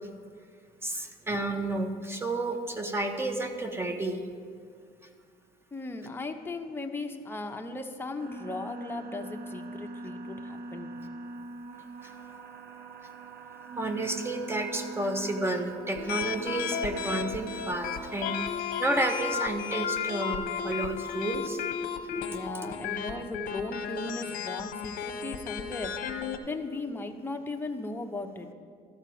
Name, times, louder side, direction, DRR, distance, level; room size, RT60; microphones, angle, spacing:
voice 1, 0.8-4.2 13.8-18.5 18.8-21.6, right 2 dB, 15° right, 6 dB, 0.9 m, -31 dB
voice 2, 5.7-11.0 22.3-28.5, left 2 dB, 15° left, 4 dB, 0.8 m, -37 dB
sound 1, 8.2-18.4, right 3 dB, 70° right, 0.7 m, -42 dB
sound 2, 15.9-26.4, left 7 dB, 60° left, 0.8 m, -34 dB
13.0 x 4.5 x 7.7 m, 2.2 s
cardioid pair, 110°, 17 cm